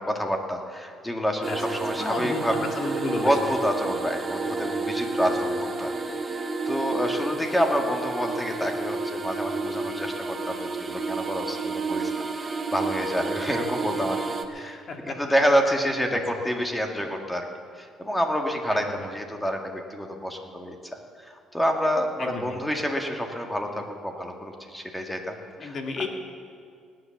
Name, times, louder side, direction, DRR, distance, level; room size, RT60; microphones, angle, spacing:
voice 1, 0.0-2.7 3.2-6.0 6.3-14.2 14.5-17.5 17.8-25.8, equal, 5° left, 2 dB, 2.0 m, -28 dB
sound 1, 1.4-14.4, right 3 dB, 25° right, 1.2 m, -30 dB
voice 2, 1.9-3.5 5.4-5.5 14.5-15.2 16.1-16.2 18.7-19.1 22.2-22.6 25.6-26.1, left 4 dB, 45° left, 2 dB, 2.4 m, -33 dB
18.0 x 10.5 x 7.3 m, 2.2 s
cardioid pair, 105°, 0 cm